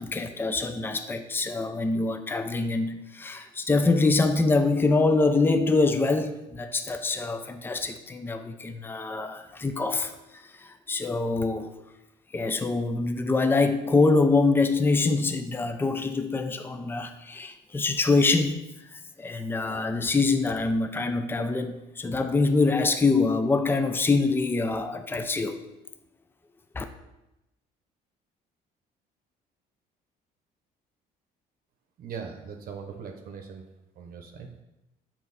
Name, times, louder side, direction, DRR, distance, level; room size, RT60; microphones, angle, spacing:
voice 1, 0.0-11.7 12.3-18.6 18.9-25.7 26.7-26.8, left 3 dB, 10° left, 8 dB, 0.5 m, -25 dB
voice 2, 32.0-33.6 34.0-34.5, right 6 dB, 60° right, 4 dB, 0.9 m, -40 dB
7.4 x 4.5 x 4.1 m, 0.93 s
cardioid pair, 110°, 17 cm